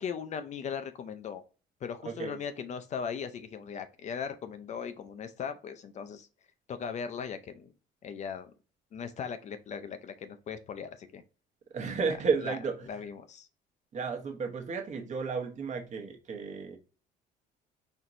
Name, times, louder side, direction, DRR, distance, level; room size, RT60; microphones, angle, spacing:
voice 1, 0.0-1.4 1.8-6.3 6.7-7.7 8.0-8.5 8.9-11.2 12.1-12.6 12.8-13.5, left 7 dB, 45° left, 0.5 m, -38 dB
voice 2, 2.0-2.4 11.7-12.9 13.9-16.8, right 5 dB, 45° right, 1.0 m, -32 dB
4.3 x 2.9 x 2.6 m
cardioid pair, 110°, 17 cm